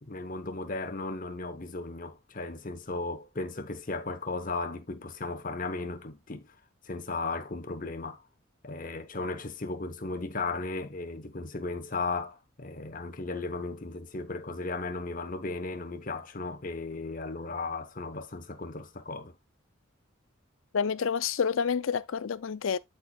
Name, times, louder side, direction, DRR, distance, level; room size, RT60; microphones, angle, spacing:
voice 1, 0.0-6.5 6.8-8.2 8.6-19.3, left 3 dB, 40° left, 0.9 m, -36 dB
voice 2, 20.7-22.8, left 6 dB, 80° left, 0.5 m, -28 dB
12.5 x 4.5 x 2.3 m
head